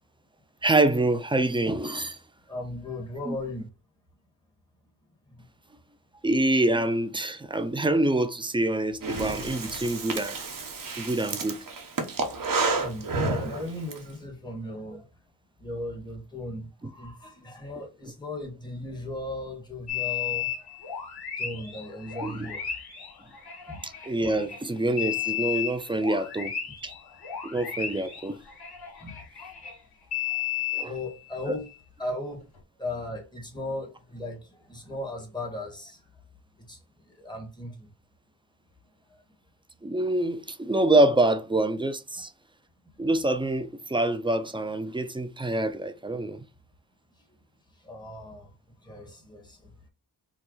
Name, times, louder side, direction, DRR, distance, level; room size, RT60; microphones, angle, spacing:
voice 1, 0.6-2.2 3.2-3.4 6.2-10.4 11.0-11.6 13.4-13.5 16.8-16.9 22.2-22.5 23.8-26.5 26.8-26.9 27.4-28.4 30.7-30.9 39.8-42.3 43.0-46.4, right 2 dB, 10° right, 0.5 m, -26 dB
voice 2, 2.5-3.7 5.3-5.4 12.4-15.0 15.6-20.5 21.4-22.6 23.7-23.8 29.0-29.1 30.8-31.7 32.0-32.4 32.8-36.0 36.7-36.8 37.1-37.9 47.8-48.5 48.8-49.9, left 1 dB, 10° left, 1.9 m, -37 dB
Breathing, 9.0-14.0, right 3 dB, 50° right, 1.2 m, -30 dB
sound 1, 19.9-24.6 25.0-29.7 30.1-31.7 32.6-32.7, left 10 dB, 60° left, 1.9 m, -34 dB
4.6 x 2.4 x 3.9 m
cardioid pair, 75°, 43 cm